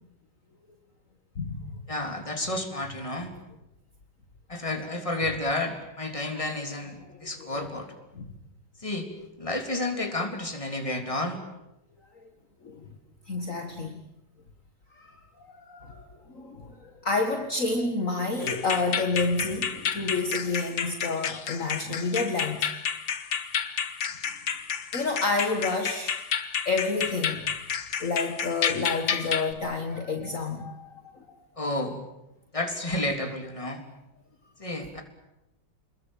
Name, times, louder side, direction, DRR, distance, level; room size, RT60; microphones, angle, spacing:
voice 1, 1.9-3.3 4.5-7.9 8.8-11.4 31.6-32.0 32.5-33.8 34.6-35.0, left 1 dB, 15° left, 4 dB, 3.5 m, -31 dB
voice 2, 7.4-7.7 8.1-8.3 12.2-12.3 12.6-12.8 13.3-14.0 14.9-15.1 15.4-22.7 24.9-26.1 26.7-27.5 28.0-31.3, left 3 dB, 45° left, 4 dB, 2.2 m, -29 dB
sound 1, 18.4-29.5, left 7 dB, 80° left, 2.2 m, -31 dB
28.0 x 21.5 x 9.2 m, 0.92 s
omnidirectional pair, 2.0 m